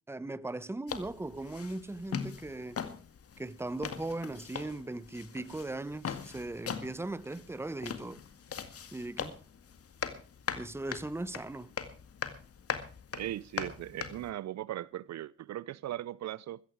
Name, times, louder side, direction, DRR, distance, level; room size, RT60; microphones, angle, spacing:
voice 1, 0.1-2.8 3.4-8.2 8.9-9.4 10.6-11.7, right 2 dB, 10° right, 0.9 m, -38 dB
sound 1, 0.9-14.3, left 7 dB, 50° left, 2.0 m, -41 dB
voice 2, 13.1-16.6, right 13 dB, 60° right, 0.6 m, -38 dB
15.0 x 14.5 x 4.7 m
cardioid pair, 90°, 30 cm